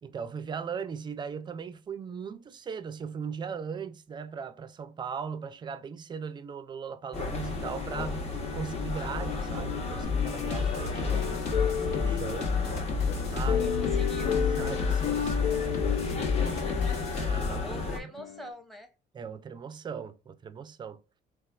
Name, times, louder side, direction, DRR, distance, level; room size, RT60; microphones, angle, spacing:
voice 1, 0.0-8.3 8.5-11.4 11.9-12.5 13.3-14.3 14.6-16.5 17.1-17.8 19.1-21.0, right 6 dB, 25° right, 0.4 m, -39 dB
sound 1, 7.1-18.0, left 3 dB, 40° left, 0.9 m, -33 dB
sound 2, 10.0-17.6, left 6 dB, 65° left, 1.1 m, -31 dB
sound 3, 10.6-17.6 18.2-18.5, left 9 dB, 85° left, 0.4 m, -33 dB
voice 2, 13.4-14.4 17.6-18.9, equal, ahead, 0.8 m, -46 dB
3.9 x 2.3 x 2.3 m
cardioid pair, 110°, 17 cm